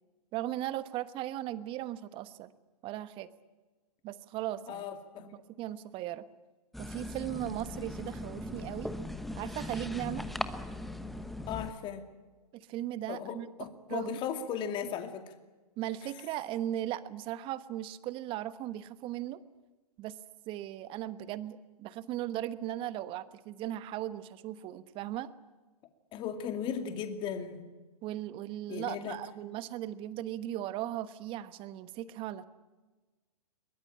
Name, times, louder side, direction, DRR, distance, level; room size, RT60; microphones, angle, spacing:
voice 1, 0.3-2.5 2.8-3.3 4.0-4.9 5.2-5.3 5.6-6.2 6.8-8.9 9.3-10.2 12.5-13.5 13.9-14.2 15.8-19.4 20.0-20.2 20.5-25.3 28.0-32.4, right 13 dB, 25° right, 14 dB, 1.2 m, -37 dB
voice 2, 4.7-5.4 11.5-12.0 13.1-15.3 26.1-27.7 28.7-29.2, left 7 dB, 25° left, 7 dB, 2.3 m, -37 dB
sound 1, 6.7-11.7, left 1 dB, ahead, 1.0 m, -39 dB
22.5 x 21.0 x 8.7 m, 1.3 s
hypercardioid pair, 125°, 20 cm